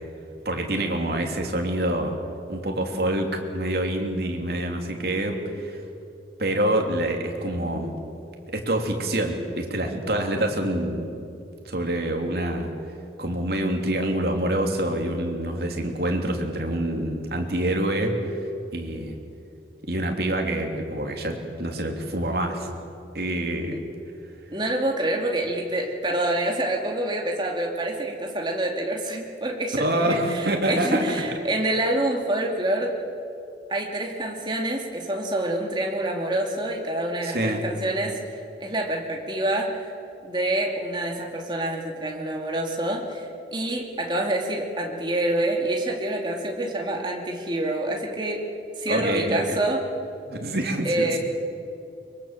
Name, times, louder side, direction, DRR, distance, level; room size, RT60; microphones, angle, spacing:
voice 1, 0.4-2.1 2.5-5.8 6.4-7.9 8.5-11.1 11.6-12.7 13.2-19.2 19.9-22.7 23.1-23.8 29.7-31.0 37.2-37.6 48.9-49.6 50.2-51.2, right 1 dB, 60° right, 2 dB, 3.1 m, -26 dB
voice 2, 24.5-32.9 33.7-39.9 40.2-48.4 48.8-49.8 50.8-51.2, right 1 dB, 25° right, 1 dB, 2.7 m, -27 dB
24.0 x 23.0 x 7.6 m, 2.6 s
head